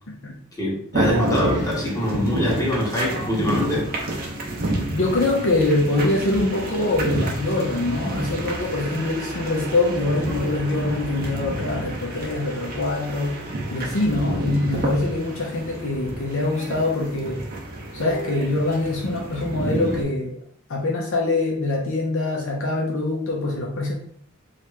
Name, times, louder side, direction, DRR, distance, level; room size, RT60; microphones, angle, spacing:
voice 1, 0.6-3.9, left 1 dB, 15° left, -5 dB, 0.9 m, -23 dB
sound 1, 0.9-20.0, right 1 dB, 45° right, 0.7 m, -29 dB
voice 2, 4.9-13.3 13.7-17.4 17.9-20.4 20.7-23.9, left 2 dB, 60° left, -1 dB, 0.6 m, -24 dB
2.9 x 2.4 x 3.3 m, 0.63 s
head